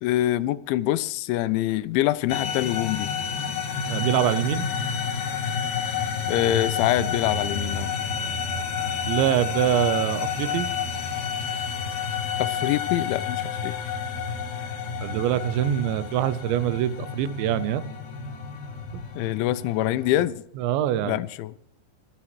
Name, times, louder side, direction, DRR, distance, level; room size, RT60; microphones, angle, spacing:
voice 1, 0.0-3.1 6.3-7.9 12.4-13.7 19.2-20.4 21.0-21.5, left 14 dB, 90° left, 3.1 m, -25 dB
sound 1, 2.3-20.3, left 6 dB, 60° left, 1.9 m, -30 dB
voice 2, 3.9-4.7 9.1-10.7 15.0-17.8 18.9-19.0 20.6-21.2, right 12 dB, 80° right, 3.0 m, -24 dB
28.5 x 10.0 x 3.1 m
omnidirectional pair, 5.2 m